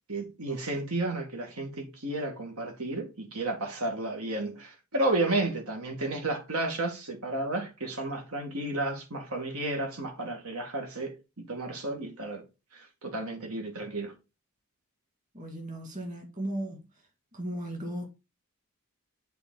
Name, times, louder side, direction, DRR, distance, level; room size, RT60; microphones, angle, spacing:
voice 1, 0.1-12.4 12.7-14.1, right 2 dB, 85° right, 2.0 m, -32 dB
voice 2, 15.3-16.8 17.3-18.1, right 1 dB, 35° right, 2.1 m, -36 dB
8.1 x 4.0 x 3.8 m
head